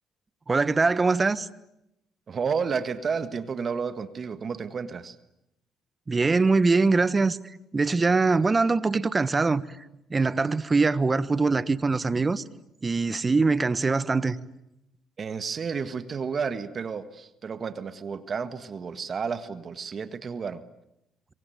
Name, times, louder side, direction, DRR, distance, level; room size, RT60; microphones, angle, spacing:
voice 1, 0.5-1.5 6.1-9.6 10.1-12.4 12.8-14.4, right 3 dB, 25° right, 1.3 m, -23 dB
voice 2, 2.3-5.2 15.2-20.6, right 6 dB, 45° right, 1.7 m, -31 dB
26.5 x 24.0 x 9.3 m
cardioid pair, 80°, 0 cm